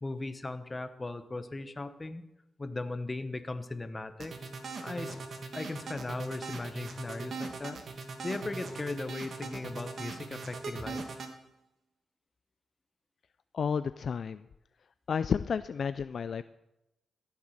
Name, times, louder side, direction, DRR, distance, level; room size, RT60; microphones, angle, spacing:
voice 1, 0.0-2.2 2.6-4.3 4.8-5.2 5.5-7.8 8.2-11.1, left 2 dB, 25° left, 10 dB, 1.0 m, -38 dB
sound 1, 4.2-11.3, right 4 dB, 65° right, 1.6 m, -40 dB
voice 2, 13.5-14.4 15.1-16.4, left 6 dB, 60° left, 13 dB, 0.3 m, -31 dB
15.0 x 7.2 x 6.5 m, 0.92 s
cardioid pair, 85°, 0 cm